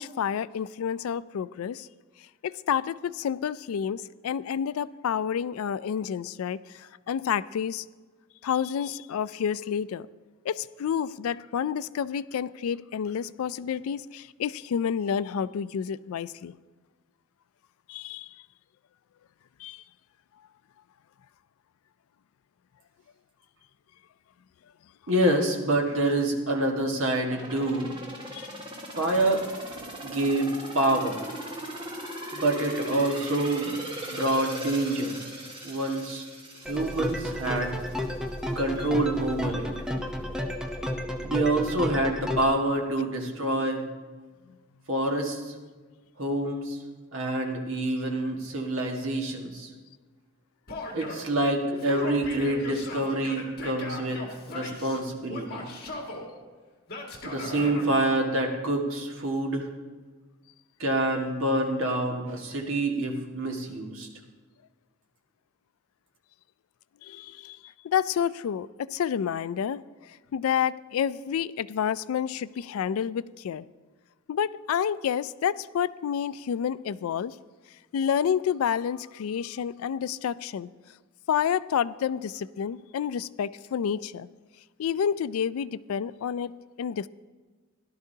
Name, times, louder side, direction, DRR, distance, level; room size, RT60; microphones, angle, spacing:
voice 1, 0.0-1.9 2.4-7.8 8.4-10.1 10.4-16.6 17.9-18.3 19.6-19.8 28.3-28.5 67.0-73.6 74.3-77.4 77.9-80.7 81.3-84.3 84.8-87.1, left 8 dB, 85° left, 18 dB, 0.3 m, -29 dB
voice 2, 25.1-27.9 29.0-29.5 30.0-31.2 32.3-33.8 34.1-35.2 35.6-36.2 36.7-37.8 38.5-39.9 41.2-43.9 44.9-45.5 46.2-46.8 47.1-49.7 50.9-55.7 57.2-59.7 60.8-64.1, right 1 dB, 65° right, 1 dB, 1.6 m, -27 dB
sound 1, 27.3-38.0 38.4-38.5, equal, 25° right, 1.6 m, -39 dB
sound 2, 36.7-42.5, equal, 5° right, 0.7 m, -32 dB
Male speech man speaking / Yell, 50.7-51.3 51.7-55.0 55.3-56.3 56.9-58.2, left 2 dB, 50° left, 2.0 m, -38 dB
16.5 x 11.5 x 2.8 m, 1.4 s
head